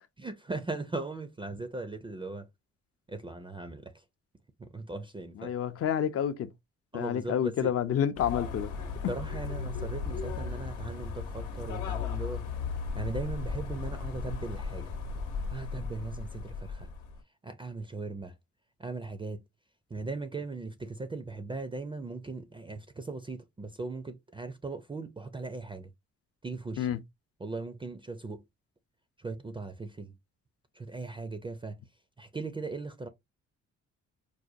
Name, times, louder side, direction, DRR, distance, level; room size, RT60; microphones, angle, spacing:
voice 1, 0.2-2.5 3.1-4.0 4.6-5.5 6.9-7.7 9.1-12.5 12.9-15.0 15.5-16.9 17.4-18.4 18.8-19.4 19.9-25.9 26.4-26.9 27.4-28.4 29.2-30.1 30.7-31.8 32.2-33.1, right 3 dB, 15° right, 0.4 m, -38 dB
voice 2, 5.4-6.5 6.9-8.7 26.8-27.0, left 9 dB, 50° left, 0.6 m, -29 dB
sound 1, 8.2-17.2, left 5 dB, 80° left, 0.9 m, -36 dB
4.8 x 2.2 x 2.6 m
cardioid pair, 90°, 30 cm